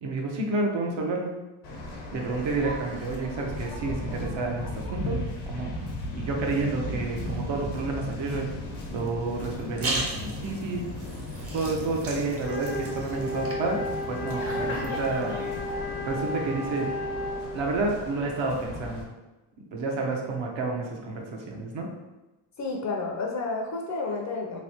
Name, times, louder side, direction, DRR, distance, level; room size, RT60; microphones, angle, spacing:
voice 1, 0.0-1.4 2.1-5.7 6.1-8.5 8.9-10.9 11.5-16.9 17.5-19.1 19.7-21.9, right 3 dB, 65° right, 0 dB, 0.8 m, -30 dB
Waves surf, 1.6-19.0, left 1 dB, 85° left, 1.0 m, -36 dB
sound 1, 9.4-15.6, right 2 dB, 30° right, 0.6 m, -38 dB
Wind instrument woodwind instrument, 12.4-17.6, left 1 dB, 90° right, 1.4 m, -33 dB
voice 2, 22.6-24.6, left 3 dB, 35° left, 0 dB, 0.5 m, -31 dB
3.1 x 2.7 x 2.8 m, 1.1 s
cardioid pair, 130°, 50 cm